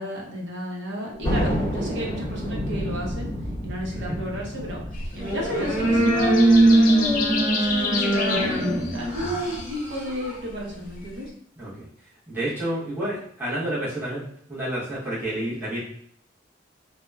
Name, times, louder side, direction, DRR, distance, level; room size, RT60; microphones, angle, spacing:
voice 1, 0.0-3.3 3.6-7.1 7.5-11.3, equal, 65° right, -2 dB, 0.7 m, -32 dB
Thunder, 1.2-8.1, equal, 20° left, 0.8 m, -30 dB
sound 1, 4.9-11.3, left 4 dB, 45° left, 0.4 m, -32 dB
sound 2, 5.1-10.4, right 1 dB, 35° right, 1.0 m, -21 dB
voice 2, 12.3-14.2 14.5-15.8, right 1 dB, 10° right, -10 dB, 0.8 m, -29 dB
2.8 x 2.1 x 2.2 m, 0.67 s
head